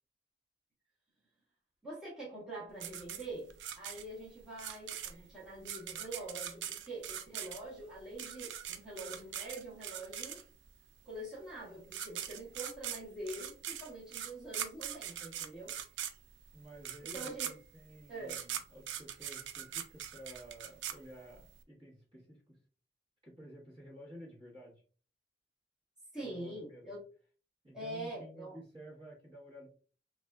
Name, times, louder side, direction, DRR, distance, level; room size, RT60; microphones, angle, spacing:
voice 1, 1.8-10.4 11.0-15.7 17.1-17.5 18.1-18.4 26.1-27.0 27.7-28.6, right 1 dB, 5° right, -8 dB, 1.0 m, -45 dB
sound 1, 2.8-10.7 11.6-11.7 11.9-21.6, right 10 dB, 80° right, 0.3 m, -42 dB
voice 2, 16.5-22.6 23.2-24.8 26.2-27.0 27.6-29.7, equal, 30° right, -5 dB, 1.2 m, -52 dB
3.4 x 2.4 x 2.2 m, 0.40 s
head